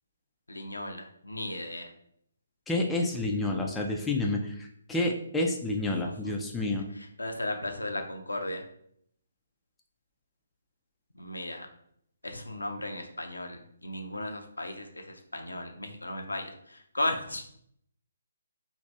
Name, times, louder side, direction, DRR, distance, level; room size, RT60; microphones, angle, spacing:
voice 1, 0.5-1.9 7.2-8.6 11.2-11.7 12.2-17.4, left 1 dB, 85° left, 4 dB, 0.5 m, -35 dB
voice 2, 2.7-6.9, left 2 dB, 5° left, 0 dB, 0.3 m, -29 dB
2.6 x 2.5 x 3.2 m, 0.68 s
figure-of-eight pair, 140°, 0 cm